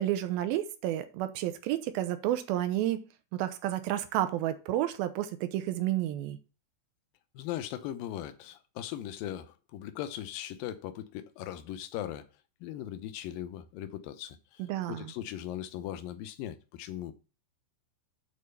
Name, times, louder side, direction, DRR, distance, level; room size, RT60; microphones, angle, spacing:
voice 1, 0.0-3.0 3.3-6.4 14.6-15.1, right 13 dB, 80° right, 2.5 m, -31 dB
voice 2, 7.3-12.3 12.6-17.1, left 12 dB, 75° left, 2.3 m, -39 dB
8.6 x 4.3 x 6.8 m
omnidirectional pair, 4.5 m